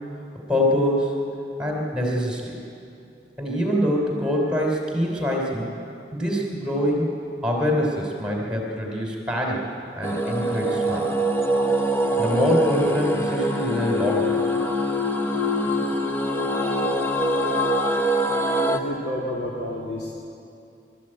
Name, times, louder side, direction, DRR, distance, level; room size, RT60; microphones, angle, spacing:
voice 1, 0.5-1.2 1.6-2.5 3.4-5.7 6.1-7.1 7.4-9.6 9.9-11.0 12.2-14.4, equal, 5° right, -1 dB, 3.4 m, -24 dB
sound 1, 10.0-18.8, equal, 15° left, 1.0 m, -24 dB
voice 2, 18.6-20.1, left 1 dB, 75° left, -4 dB, 2.9 m, -30 dB
25.0 x 13.5 x 8.9 m, 2.6 s
head